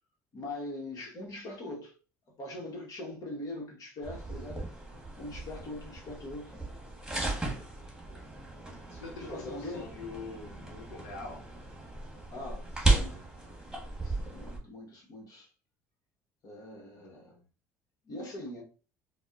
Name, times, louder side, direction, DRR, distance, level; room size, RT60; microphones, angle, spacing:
voice 1, 0.3-2.0 2.4-4.6 5.1-6.5 9.2-10.0 11.1-11.3 12.3-13.3 14.0-15.5 16.4-17.3 18.0-18.6, left 1 dB, 50° left, 1.0 m, -42 dB
sound 1, 4.0-14.6, right 3 dB, 10° right, 1.2 m, -35 dB
voice 2, 8.0-8.4 8.9-11.4 17.0-17.5, left 3 dB, 85° left, 0.7 m, -45 dB
4.0 x 2.0 x 2.4 m
hypercardioid pair, 65°, 8 cm